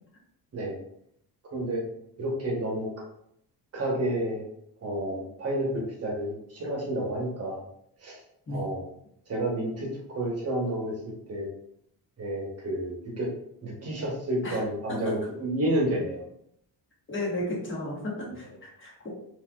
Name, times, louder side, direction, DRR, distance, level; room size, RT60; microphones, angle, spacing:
voice 1, 1.5-1.8 2.2-2.9 3.7-4.4 4.8-7.6 8.0-8.2 8.5-8.9 9.3-10.9 11.3-11.5 12.2-13.3 13.6-16.2, right 1 dB, 40° right, -1 dB, 0.9 m, -30 dB
voice 2, 14.4-15.0 17.1-19.1, left 1 dB, 30° left, -4 dB, 1.1 m, -34 dB
3.8 x 2.6 x 2.3 m, 0.74 s
cardioid pair, 150°, 38 cm